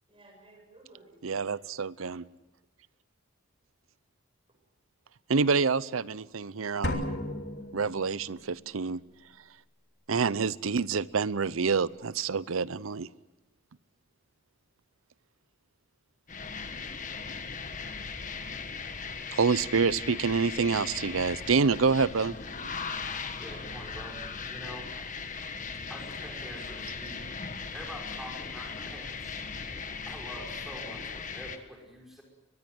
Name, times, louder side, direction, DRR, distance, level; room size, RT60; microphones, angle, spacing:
voice 1, 0.1-1.4 1.7-1.9 7.5-7.8 8.3-8.6 9.3-9.4, right 2 dB, 25° right, 2 dB, 7.2 m, -57 dB
voice 2, 1.2-2.2 5.3-7.1 7.7-9.0 10.1-13.1 19.3-22.7, right 5 dB, 85° right, 19 dB, 0.7 m, -27 dB
sound 1, 6.8-8.5, left 1 dB, 55° left, 3.1 m, -34 dB
sound 2, 16.3-31.6, left 5 dB, 40° left, 1.6 m, -38 dB
voice 3, 23.4-24.2 24.5-24.9 25.9-27.3 27.7-29.4 30.1-32.2, equal, ahead, -1 dB, 5.5 m, -45 dB
23.5 x 21.0 x 7.9 m, 1.1 s
head